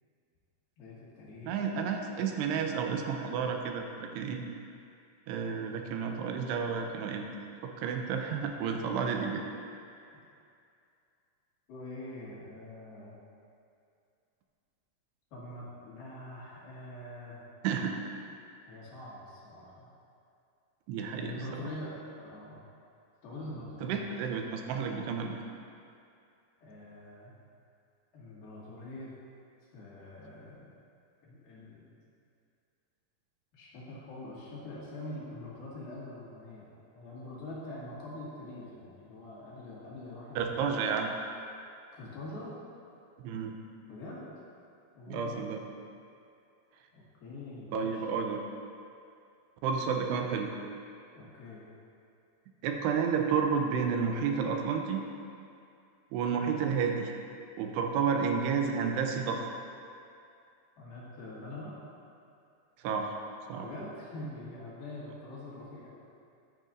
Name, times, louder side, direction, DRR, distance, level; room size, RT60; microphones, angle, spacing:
voice 1, 0.8-1.6 11.7-13.1 15.3-17.5 18.7-19.9 21.2-22.6 23.2-24.2 26.6-27.3 28.1-29.1 29.7-30.7 31.2-31.9 33.5-40.8 41.9-42.5 43.9-44.3 45.0-45.4 46.9-48.0 51.1-51.6 60.8-61.7 63.6-65.9, left 1 dB, 65° left, -8 dB, 3.7 m, -44 dB
voice 2, 1.4-4.4 5.3-7.3 7.6-9.5 17.6-17.9 20.9-21.7 23.8-25.3 40.4-41.1 43.2-43.6 45.1-45.6 47.7-48.4 49.6-50.5 52.6-55.0 56.1-57.1 57.6-59.5 62.8-63.1 63.5-63.7, right 6 dB, 85° right, 3 dB, 2.8 m, -31 dB
13.5 x 9.4 x 2.6 m, 2.5 s
omnidirectional pair, 4.9 m